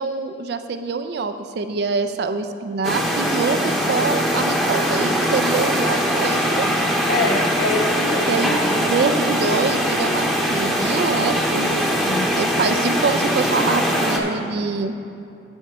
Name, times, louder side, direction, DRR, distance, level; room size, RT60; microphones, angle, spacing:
voice 1, 0.0-6.7 8.3-11.6 12.3-14.9, right 4 dB, 65° right, 8 dB, 0.4 m, -25 dB
sound 1, 2.8-14.2, equal, ahead, 0.8 m, -21 dB
voice 2, 7.1-8.4 11.5-12.3, left 3 dB, 65° left, 3 dB, 0.5 m, -26 dB
8.0 x 7.8 x 4.7 m, 2.7 s
head